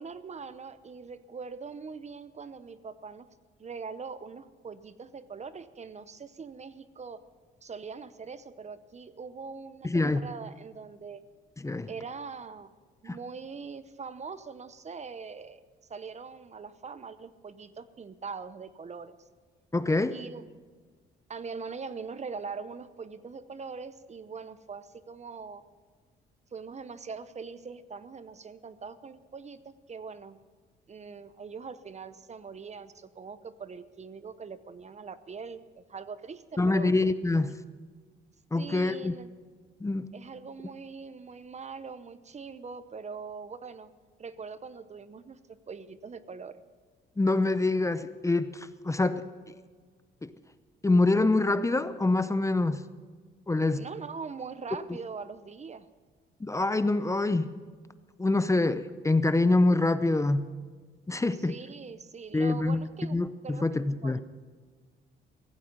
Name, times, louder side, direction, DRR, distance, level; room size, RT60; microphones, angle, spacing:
voice 1, 0.0-3.3 3.6-7.2 7.6-11.2 11.9-12.7 13.0-15.6 15.9-19.1 20.1-20.5 21.3-25.6 26.5-30.4 30.9-36.9 38.5-39.3 40.1-43.9 44.2-45.4 45.7-46.6 53.8-55.9 61.4-63.2 63.4-64.2, right 5 dB, 35° right, 14 dB, 0.8 m, -42 dB
voice 2, 9.8-10.2 11.6-11.9 13.1-13.2 19.7-20.2 36.6-37.6 38.5-39.1 39.8-40.1 47.2-49.2 50.2-50.3 50.8-52.8 53.5-53.8 56.4-57.5 58.2-60.5 61.1-61.5 62.3-62.8 63.1-64.2, left 2 dB, 15° left, 12 dB, 0.7 m, -25 dB
16.5 x 15.0 x 5.3 m, 1.5 s
cardioid pair, 90°, 20 cm